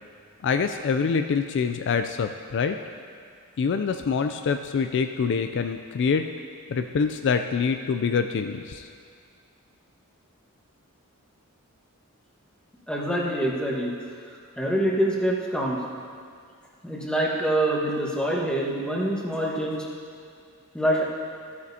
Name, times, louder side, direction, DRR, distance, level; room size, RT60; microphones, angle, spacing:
voice 1, 0.4-2.8 3.6-6.3 6.7-8.9, left 5 dB, 55° left, 7 dB, 0.4 m, -25 dB
voice 2, 12.9-13.9 14.6-15.8 16.8-19.9 20.7-21.0, right 1 dB, 5° left, -3 dB, 1.3 m, -25 dB
14.0 x 9.4 x 2.8 m, 2.2 s
head